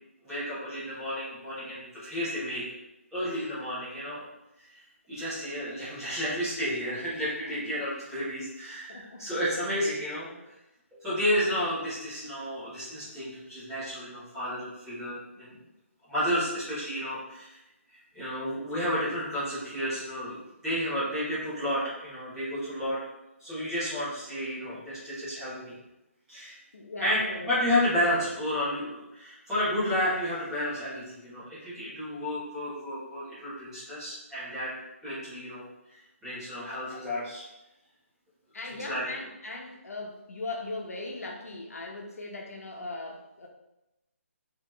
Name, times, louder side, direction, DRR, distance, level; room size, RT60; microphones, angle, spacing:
voice 1, 0.2-2.6 3.1-4.2 4.7-4.8 5.1-10.5 10.9-15.6 16.1-17.6 18.1-20.4 20.6-23.0 23.4-25.8 26.3-26.6 27.0-34.7 35.0-35.6 35.9-37.4 38.6-39.0, equal, 5° right, -14 dB, 1.1 m, -31 dB
voice 2, 8.9-9.3 26.7-27.6 38.5-43.5, left 2 dB, 85° left, 0 dB, 0.9 m, -39 dB
4.0 x 3.1 x 3.1 m, 0.94 s
hypercardioid pair, 180°, 8 cm